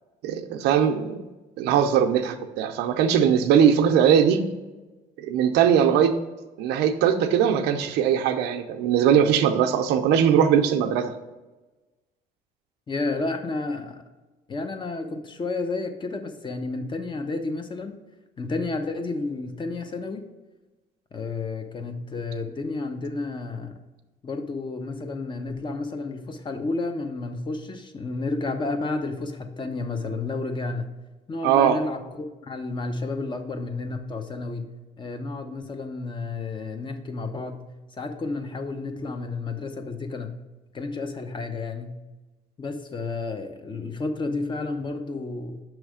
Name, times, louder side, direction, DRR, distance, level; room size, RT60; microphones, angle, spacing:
voice 1, 0.2-1.2 1.6-4.4 5.2-6.1 6.6-11.1 31.4-31.8, right 8 dB, 90° right, 5 dB, 0.6 m, -20 dB
voice 2, 12.9-14.0 14.5-18.0 18.4-20.3 21.1-23.7 24.2-30.9 31.3-34.7 35.0-40.3 40.7-42.0 42.6-45.6, left 3 dB, 30° left, 6 dB, 0.7 m, -31 dB
6.2 x 3.2 x 4.9 m, 1.2 s
cardioid pair, 110°, 17 cm